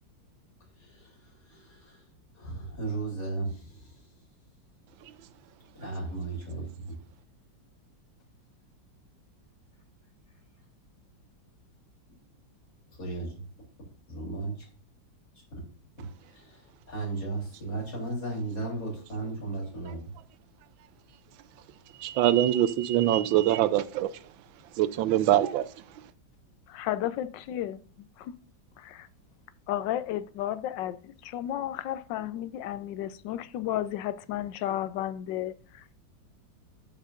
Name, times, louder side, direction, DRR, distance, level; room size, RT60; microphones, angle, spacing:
voice 1, 0.8-2.1 2.3-4.1 5.7-7.0 13.0-13.4 14.1-14.7 15.5-15.6 16.0-20.1, right 3 dB, 45° left, 3.8 m, -36 dB
voice 2, 22.0-24.1 24.8-25.7, right 12 dB, 85° right, 1.4 m, -23 dB
voice 3, 26.7-28.3 28.8-29.1 29.7-36.0, left 12 dB, 75° left, 1.3 m, -33 dB
12.0 x 5.6 x 2.5 m
omnidirectional pair, 2.1 m